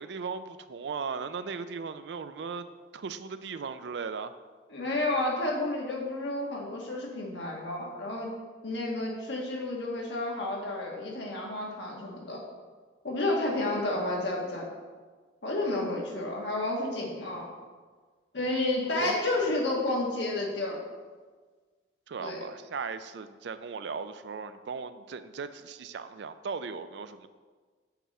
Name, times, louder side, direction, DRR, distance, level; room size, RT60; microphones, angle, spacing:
voice 1, 0.0-2.7 2.9-4.3 19.0-19.2 22.1-27.3, right 5 dB, 65° right, 11 dB, 0.4 m, -37 dB
voice 2, 4.7-8.3 8.6-12.4 13.0-14.6 15.4-17.5 18.3-20.8 22.2-22.4, left 2 dB, 70° left, -2 dB, 1.6 m, -31 dB
7.0 x 5.9 x 4.2 m, 1.5 s
head